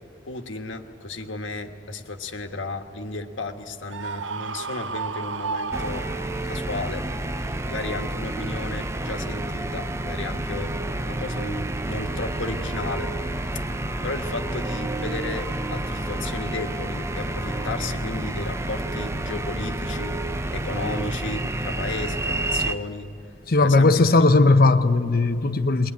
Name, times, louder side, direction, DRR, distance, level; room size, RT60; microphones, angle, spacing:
voice 1, 0.3-6.0 6.4-7.0 7.6-10.7 11.0-13.1 14.0-20.1 20.5-23.1 23.6-24.0, left 2 dB, 85° left, 1.4 m, -33 dB
Screaming, 3.9-6.6, right 5 dB, 75° right, 0.6 m, -32 dB
sound 1, 5.7-22.7, right 1 dB, 15° right, 0.6 m, -29 dB
Wind instrument woodwind instrument, 12.0-18.1, left 1 dB, 30° left, 3.0 m, -45 dB
voice 2, 23.5-25.9, left 3 dB, 50° left, 0.8 m, -17 dB
22.0 x 19.5 x 9.6 m
head